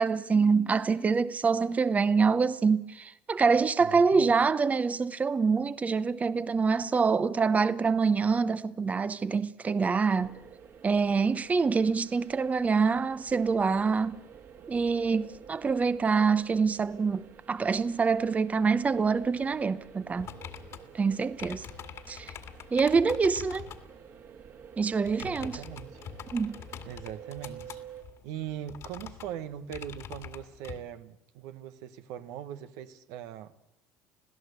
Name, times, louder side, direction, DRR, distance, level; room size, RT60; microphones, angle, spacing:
voice 1, 0.0-10.4 10.8-14.2 14.7-20.3 20.9-21.7 22.1-22.3 22.7-23.7 24.8-25.6 26.3-26.6, right 5 dB, 25° right, 0.8 m, -26 dB
voice 2, 3.8-4.3 25.2-26.0 26.9-27.8 28.2-33.6, right 10 dB, 80° right, 1.2 m, -41 dB
sound 1, 10.2-28.0, right 8 dB, 55° right, 2.8 m, -51 dB
sound 2, 20.2-23.9 24.9-30.8, left 8 dB, 55° left, 2.2 m, -45 dB
26.5 x 16.5 x 8.1 m
supercardioid pair, 90°, 6 cm